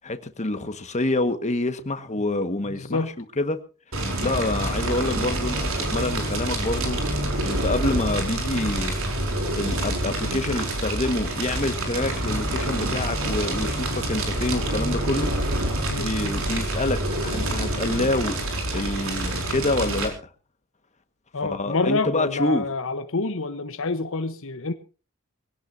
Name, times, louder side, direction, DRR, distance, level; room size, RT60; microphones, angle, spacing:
voice 1, 0.0-3.0 3.4-3.6 4.2-7.0 7.4-9.0 9.5-15.3 15.9-18.4 18.7-20.1 21.4-22.7, left 2 dB, 35° left, 1.5 m, -27 dB
voice 2, 2.7-3.1 15.9-16.1 21.3-24.7, left 3 dB, 65° left, 1.0 m, -27 dB
Fire, 3.9-20.1, right 1 dB, 70° right, 5.1 m, -27 dB
23.0 x 17.0 x 2.7 m
head